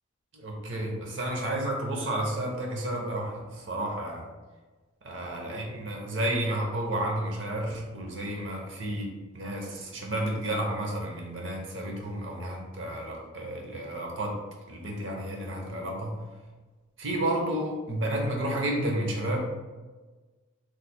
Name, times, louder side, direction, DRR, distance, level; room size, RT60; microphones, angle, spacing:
voice 1, 0.3-4.2 5.0-14.4 14.7-16.2 17.0-19.4, right 1 dB, 65° right, 0 dB, 0.7 m, -31 dB
3.2 x 2.1 x 4.2 m, 1.3 s
head